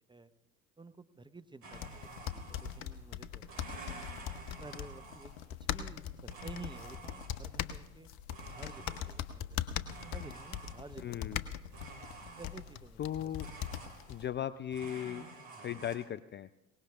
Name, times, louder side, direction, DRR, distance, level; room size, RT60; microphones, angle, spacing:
voice 1, 0.8-3.8 4.6-5.3 5.6-8.1 8.5-9.7 10.1-11.3 12.4-13.3, right 3 dB, 10° right, 10 dB, 0.7 m, -51 dB
Domestic sounds home sounds, 1.6-3.0 3.4-5.6 6.3-7.6 8.3-9.4 9.9-11.1 11.7-12.8 13.4-14.4 14.7-16.0, right 3 dB, 65° right, 3.6 m, -50 dB
sound 1, 1.7-14.3, left 10 dB, 70° left, 0.8 m, -41 dB
voice 2, 11.0-11.4 13.0-13.5 14.1-15.3 15.6-16.5, left 10 dB, 30° left, 14 dB, 0.4 m, -37 dB
22.0 x 19.0 x 2.4 m, 0.95 s
hypercardioid pair, 60°, 39 cm